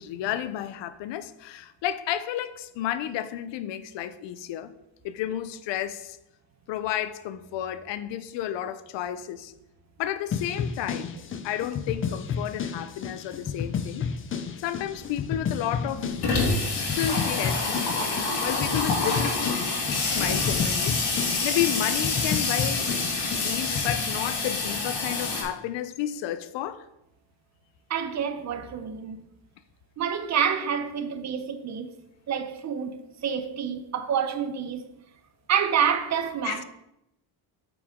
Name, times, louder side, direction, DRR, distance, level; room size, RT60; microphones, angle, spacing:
voice 1, 0.0-4.7 5.0-6.2 6.7-9.5 10.0-11.2 11.4-14.1 14.6-16.2 16.7-17.8 18.4-19.7 20.0-21.0 21.4-22.9 23.4-26.9 36.4-36.6, left 11 dB, 80° left, 0.6 m, -31 dB
sound 1, 10.3-24.0, left 6 dB, 30° left, 0.4 m, -32 dB
Water tap faucet / Sink (filling or washing), 14.9-15.0 15.2-15.3 15.5-25.4, left 3 dB, 65° left, 2.1 m, -27 dB
voice 2, 27.9-29.2 30.0-31.9 32.3-34.9 35.5-36.6, right 7 dB, 40° right, 0.6 m, -28 dB
8.6 x 5.0 x 3.6 m
cardioid pair, 150°, 44 cm